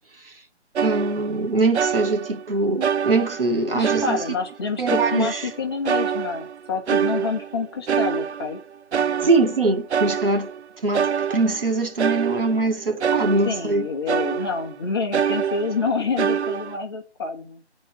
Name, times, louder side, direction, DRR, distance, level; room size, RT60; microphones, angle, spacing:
sound 1, 0.7-1.5 1.7-2.5 2.8-4.6 4.9-5.6 5.9-8.6 8.9-10.6 10.9-13.8 14.1-14.8 15.1-16.8, right 7 dB, 70° right, 0.5 m, -26 dB
voice 1, 0.8-4.2 4.8-5.5 9.2-10.5 10.8-13.9, right 3 dB, 50° right, 2.1 m, -22 dB
voice 2, 3.7-8.6 13.4-17.6, left 5 dB, 20° left, 1.5 m, -27 dB
12.5 x 4.3 x 5.7 m
figure-of-eight pair, 165°, 35 cm